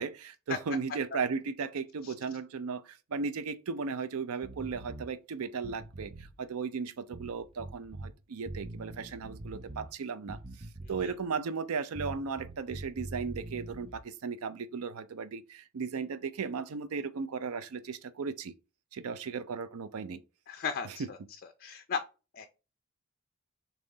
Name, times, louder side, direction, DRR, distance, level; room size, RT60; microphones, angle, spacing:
voice 1, 0.0-10.4 10.9-18.5 18.9-20.2 20.8-21.1, right 5 dB, 85° right, 0.5 m, -36 dB
sound 1, 4.4-5.1 5.6-6.3 7.1-8.1 8.5-9.9 10.3-11.2 12.0-14.0, right 2 dB, 25° right, 0.4 m, -44 dB
voice 2, 20.5-21.2 21.6-22.0 22.3-22.5, left 6 dB, 40° left, 0.3 m, -35 dB
3.9 x 3.0 x 3.6 m
head